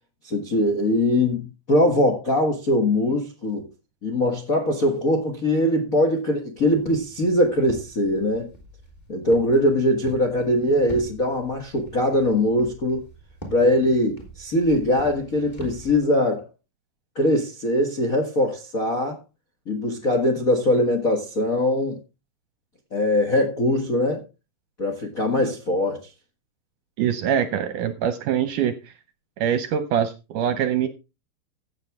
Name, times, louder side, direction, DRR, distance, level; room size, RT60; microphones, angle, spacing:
voice 1, 0.2-3.6 4.0-8.5 9.1-13.0 13.5-16.5 17.1-19.2 19.7-22.0 22.9-24.2 24.8-26.1, left 1 dB, 65° left, 0.8 m, -22 dB
Walk footsteps, 6.6-16.0, right 1 dB, 10° left, 3.1 m, -43 dB
voice 2, 27.0-28.7 29.4-30.9, right 9 dB, 75° right, 2.0 m, -23 dB
15.5 x 7.9 x 3.5 m
omnidirectional pair, 4.3 m